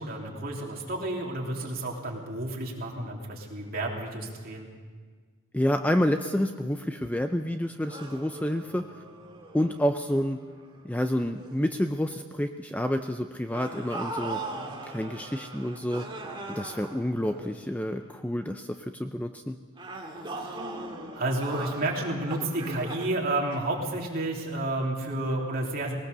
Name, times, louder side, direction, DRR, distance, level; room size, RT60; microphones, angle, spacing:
voice 1, 0.0-4.7 21.1-26.0, right 2 dB, 45° right, -1 dB, 3.2 m, -31 dB
voice 2, 5.5-8.8 9.5-10.4 10.8-14.4 14.9-16.1 16.5-19.6, equal, 5° left, 7 dB, 0.5 m, -28 dB
sound 1, 7.9-11.0 11.4-11.7 13.5-18.1 19.8-24.3, right 2 dB, 20° right, 2.2 m, -40 dB
20.5 x 18.5 x 6.9 m, 1.5 s
head